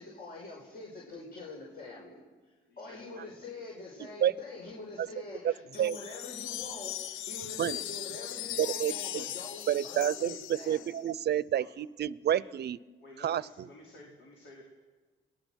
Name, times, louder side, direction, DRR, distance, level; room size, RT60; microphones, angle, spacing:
voice 1, 0.0-2.2 2.8-11.0, left 3 dB, 50° left, -2 dB, 5.6 m, -45 dB
voice 2, 2.6-3.3 5.3-5.4 11.5-11.7 12.2-12.5 13.0-14.6, left 2 dB, 70° left, -2 dB, 4.8 m, -53 dB
sound 1, 5.7-11.1, left 13 dB, 90° left, 0.6 m, -39 dB
voice 3, 8.6-9.2 9.7-12.8 13.2-13.7, right 10 dB, 55° right, 20 dB, 0.7 m, -29 dB
29.0 x 19.5 x 6.4 m, 1.3 s
cardioid pair, 90°, 20 cm